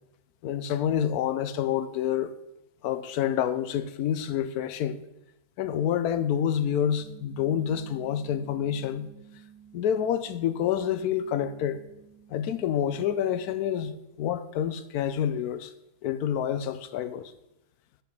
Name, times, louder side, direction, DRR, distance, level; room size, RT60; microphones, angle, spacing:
voice 1, 0.4-2.3 2.8-5.0 5.6-9.1 9.7-11.8 12.3-15.7 16.0-17.3, left 9 dB, 75° left, 1.1 m, -28 dB
sound 1, 7.0-13.9, right 8 dB, 45° right, 2.2 m, -53 dB
10.5 x 4.7 x 5.4 m
omnidirectional pair, 1.6 m